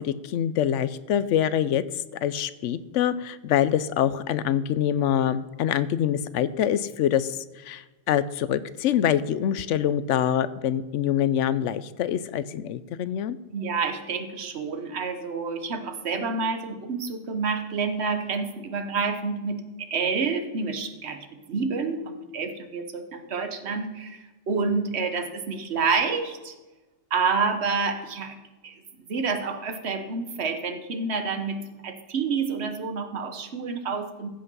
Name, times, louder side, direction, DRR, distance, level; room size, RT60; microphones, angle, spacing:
voice 1, 0.0-1.8 2.2-13.4, left 10 dB, 80° left, 15 dB, 0.9 m, -25 dB
voice 2, 13.5-26.5 27.1-28.4 28.6-28.8 29.1-34.3, right 4 dB, 60° right, 7 dB, 1.3 m, -28 dB
15.5 x 5.7 x 5.4 m, 1.2 s
omnidirectional pair, 1.3 m